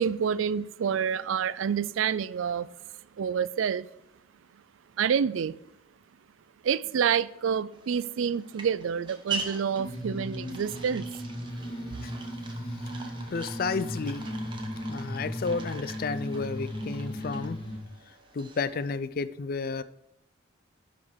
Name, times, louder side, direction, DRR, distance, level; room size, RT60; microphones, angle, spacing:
voice 1, 0.0-2.7 3.2-3.9 5.0-5.6 6.6-11.0, right 7 dB, 80° right, 0.4 m, -28 dB
sound 1, 7.7-19.0, right 4 dB, 25° right, 1.1 m, -43 dB
sound 2, 9.8-17.8, equal, 25° left, 1.8 m, -36 dB
voice 2, 13.3-14.3 14.9-17.6 18.3-19.8, left 4 dB, 50° left, 0.4 m, -32 dB
10.5 x 5.1 x 4.7 m
head